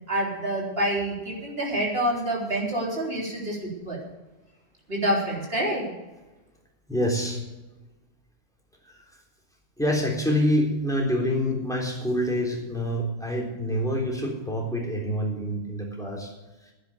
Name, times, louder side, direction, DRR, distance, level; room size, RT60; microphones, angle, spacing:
voice 1, 0.1-4.0 4.9-5.8, right 1 dB, 60° right, -3 dB, 4.1 m, -27 dB
voice 2, 6.9-7.4 9.8-16.3, equal, 5° left, -1 dB, 3.6 m, -26 dB
11.0 x 10.5 x 6.7 m, 1.1 s
omnidirectional pair, 1.1 m